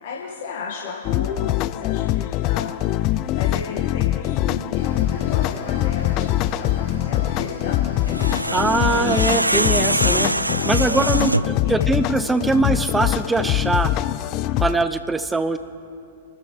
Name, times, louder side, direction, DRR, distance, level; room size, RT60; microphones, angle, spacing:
voice 1, 0.0-2.8 3.3-6.2 6.6-8.1 10.8-11.2 11.4-11.9, left 5 dB, 55° left, -2 dB, 1.7 m, -34 dB
sound 1, 1.0-14.8, left 14 dB, 35° left, 0.4 m, -23 dB
Cricket / Waves surf, 4.7-10.0, right 3 dB, 60° right, 2.8 m, -38 dB
sound 2, 8.0-11.6, right 1 dB, 90° right, 0.4 m, -23 dB
voice 2, 8.5-10.3 10.6-13.9 14.6-15.6, right 3 dB, 10° right, 11 dB, 0.7 m, -22 dB
27.5 x 13.0 x 3.3 m, 2.6 s
figure-of-eight pair, 100°, 0 cm